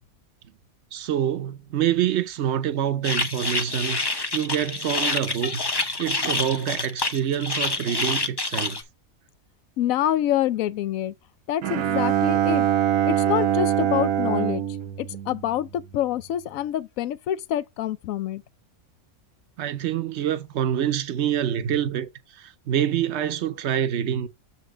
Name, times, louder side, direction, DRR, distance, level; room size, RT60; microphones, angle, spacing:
voice 1, 0.9-5.6 6.0-8.8 19.6-24.3, right 10 dB, 60° right, 0.9 m, -26 dB
sound 1, 3.0-8.8, left 3 dB, 20° left, 0.7 m, -27 dB
voice 2, 9.8-11.1 11.5-12.7 13.0-14.6 15.0-18.4, left 12 dB, 75° left, 1.0 m, -26 dB
Bowed string instrument, 11.6-16.0, right 10 dB, 75° right, 1.2 m, -24 dB
7.4 x 4.1 x 4.9 m
omnidirectional pair, 1.5 m